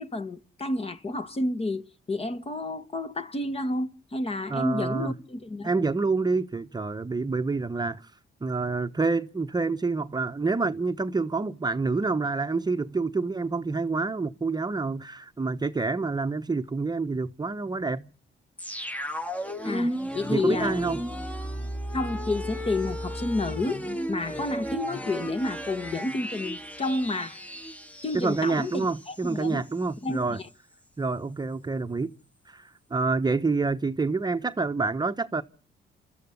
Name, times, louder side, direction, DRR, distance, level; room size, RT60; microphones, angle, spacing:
voice 1, 0.0-5.7 19.6-20.7 21.9-27.4 28.0-29.6 30.0-30.4, left 2 dB, 30° left, 1.4 m, -30 dB
voice 2, 4.5-5.2 5.6-8.1 8.4-18.1 20.3-21.0 28.1-30.4 31.0-32.1 32.5-35.4, right 3 dB, 20° right, 1.0 m, -27 dB
sound 1, 18.6-29.4 29.7-29.8, equal, 5° left, 1.2 m, -34 dB
28.5 x 14.0 x 8.2 m
cardioid pair, 90°, 20 cm